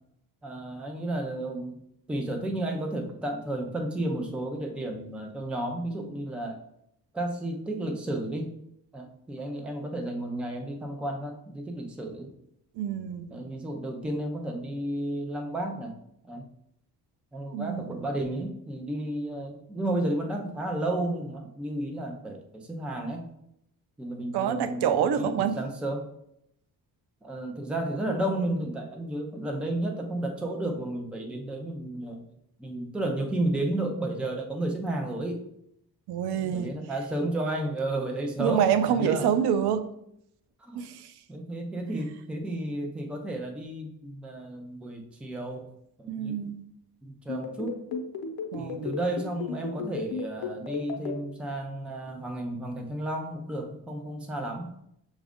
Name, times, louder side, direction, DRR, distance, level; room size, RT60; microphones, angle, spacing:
voice 1, 0.4-1.8 2.1-6.6 7.1-8.5 8.9-12.3 13.3-16.0 16.2-16.5 17.3-23.3 24.0-26.1 27.2-32.2 32.6-35.4 36.4-39.3 40.6-40.8 41.3-45.7 46.0-46.5 47.0-47.8 48.6-54.7, right 1 dB, 5° right, 0.3 m, -32 dB
voice 2, 12.8-13.3 17.5-18.1 24.3-25.6 36.1-36.7 38.4-39.9 40.8-41.0 46.1-46.6 48.5-48.9, right 8 dB, 90° right, 0.5 m, -26 dB
sound 1, 47.3-51.1, left 6 dB, 70° left, 0.7 m, -33 dB
6.1 x 2.4 x 3.5 m
cardioid pair, 175°, 38 cm